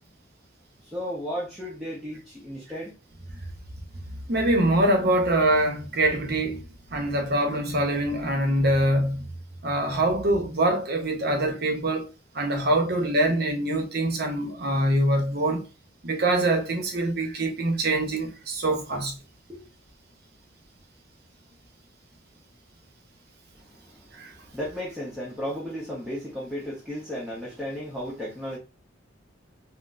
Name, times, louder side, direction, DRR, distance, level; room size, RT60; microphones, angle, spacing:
voice 1, 0.8-2.9 19.5-19.6 23.6-28.6, equal, 5° right, 0.8 m, -34 dB
voice 2, 4.1-9.3 9.6-12.1 12.3-15.7 16.0-19.1 24.1-24.3, right 1 dB, 55° right, 0.7 m, -24 dB
4.1 x 2.0 x 2.4 m
head